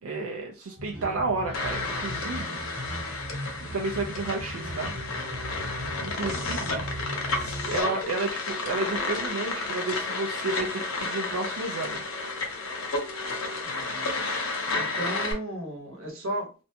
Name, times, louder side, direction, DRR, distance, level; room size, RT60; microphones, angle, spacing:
voice 1, 0.0-2.6 3.6-4.9 6.0-6.9 7.3-12.0, right 3 dB, 90° right, 1 dB, 0.4 m, -32 dB
sound 1, 0.6-3.0 4.2-13.7, left 1 dB, ahead, 0.7 m, -48 dB
sound 2, 0.8-7.8, equal, 45° right, 1.1 m, -38 dB
sound 3, 1.5-15.3, left 3 dB, 75° left, 0.7 m, -32 dB
voice 2, 6.2-6.6 13.6-14.1 14.7-16.6, right 1 dB, 65° right, 1 dB, 0.9 m, -36 dB
2.5 x 2.1 x 2.7 m, 0.34 s
head